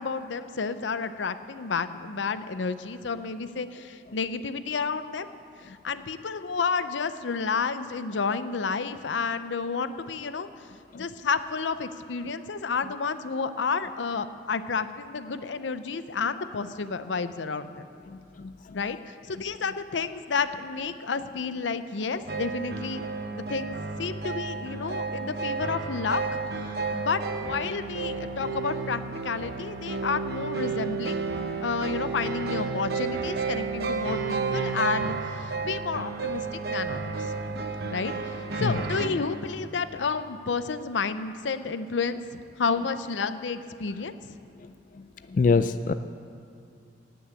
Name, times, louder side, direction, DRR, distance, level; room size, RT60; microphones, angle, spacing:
voice 1, 0.0-5.3 5.6-10.5 10.9-17.8 18.7-23.0 23.5-31.2 31.6-37.1 37.9-44.1, left 5 dB, 90° left, 12 dB, 0.6 m, -31 dB
voice 2, 18.1-18.8 38.6-38.7 45.3-45.9, left 4 dB, 45° left, 11 dB, 0.3 m, -25 dB
sound 1, 22.3-39.1, right 4 dB, 60° right, 1.0 m, -32 dB
18.0 x 6.2 x 8.2 m, 2.5 s
head